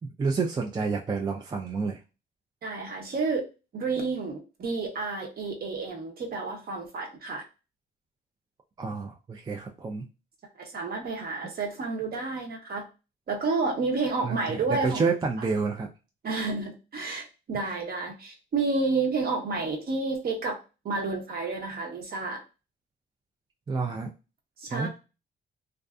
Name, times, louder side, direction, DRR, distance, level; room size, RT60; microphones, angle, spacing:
voice 1, 0.2-2.0 8.8-10.0 14.2-15.9 23.7-24.1 24.7-24.9, right 4 dB, 20° right, 1 dB, 0.3 m, -29 dB
voice 2, 2.6-3.4 3.7-7.4 10.6-12.8 13.3-15.1 16.2-20.6 20.8-22.4 24.6-24.9, right 3 dB, 50° right, 2 dB, 0.8 m, -30 dB
2.5 x 2.4 x 2.2 m, 0.31 s
cardioid pair, 90°, 20 cm